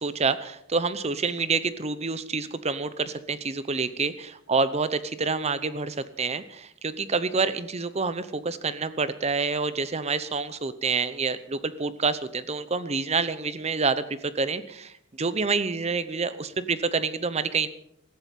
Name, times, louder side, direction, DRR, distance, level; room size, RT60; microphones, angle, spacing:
voice 1, 0.0-17.7, right 4 dB, 30° right, 14 dB, 0.7 m, -28 dB
18.0 x 13.5 x 5.4 m, 0.74 s
head